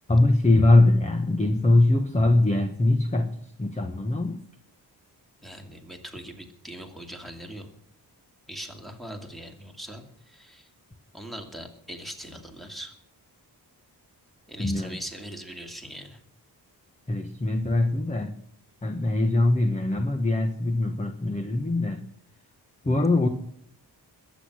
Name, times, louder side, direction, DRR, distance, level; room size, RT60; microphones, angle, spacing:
voice 1, 0.1-4.4 14.6-15.0 17.1-18.3 18.8-22.1 22.8-23.3, left 2 dB, 15° left, 6 dB, 1.2 m, -22 dB
voice 2, 5.4-7.7 8.5-10.7 11.1-12.9 14.5-16.2, right 1 dB, ahead, 3 dB, 2.5 m, -41 dB
21.5 x 8.4 x 6.3 m, 0.69 s
wide cardioid pair, 130°, 40 cm